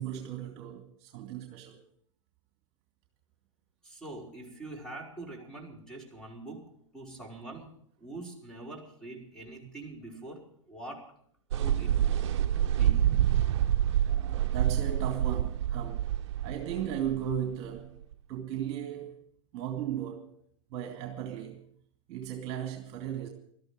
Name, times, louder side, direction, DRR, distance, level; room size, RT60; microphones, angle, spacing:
voice 1, 0.0-1.8 7.0-7.2 9.6-9.7 14.0-16.1 16.4-18.0 18.3-19.2 19.5-20.3 20.7-21.6 22.1-23.3, right 10 dB, 40° right, 2.3 m, -36 dB
voice 2, 3.8-6.6 6.9-7.7 8.0-11.0 11.6-12.1 12.8-13.0, right 2 dB, 5° left, 5.2 m, -44 dB
sound 1, 11.5-18.1, right 11 dB, 60° right, 0.8 m, -27 dB
18.5 x 13.5 x 5.2 m
hypercardioid pair, 110°, 16 cm